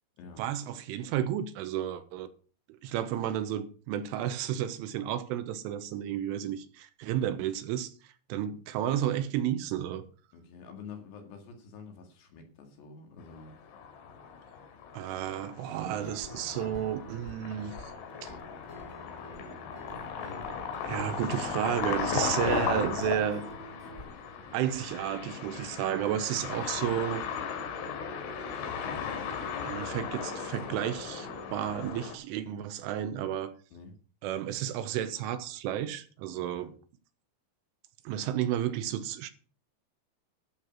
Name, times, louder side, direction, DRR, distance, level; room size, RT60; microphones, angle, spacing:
voice 1, 0.4-2.3 2.8-7.9 8.3-10.1 14.9-17.9 18.2-18.3 20.8-23.4 24.5-27.3 29.6-33.5 34.2-36.7 38.1-39.3, right 11 dB, 80° right, 3.3 m, -32 dB
voice 2, 10.3-13.5 33.7-33.9 36.4-36.7, left 5 dB, 65° left, 3.8 m, -48 dB
sound 1, 13.4-32.2, left 6 dB, 80° left, 4.7 m, -36 dB
Guitar, 15.8-24.0, left 1 dB, 20° left, 2.5 m, -48 dB
12.5 x 6.6 x 7.3 m
omnidirectional pair, 5.8 m